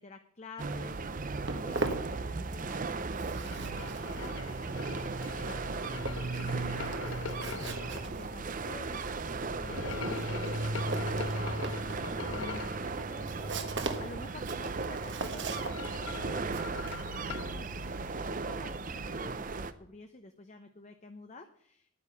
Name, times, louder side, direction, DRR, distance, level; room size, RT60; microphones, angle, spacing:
voice 1, 0.0-3.0 3.3-21.9, left 3 dB, 35° left, 7 dB, 0.8 m, -51 dB
sound 1, 0.6-19.7, right 3 dB, 40° right, 0.6 m, -36 dB
Walk footsteps, 1.0-2.8 3.0-18.4, right 3 dB, 60° right, 1.4 m, -41 dB
sound 2, 3.4-8.0 9.6-12.8 15.0-17.5, left 6 dB, 65° left, 0.5 m, -43 dB
10.5 x 9.5 x 6.9 m, 0.69 s
head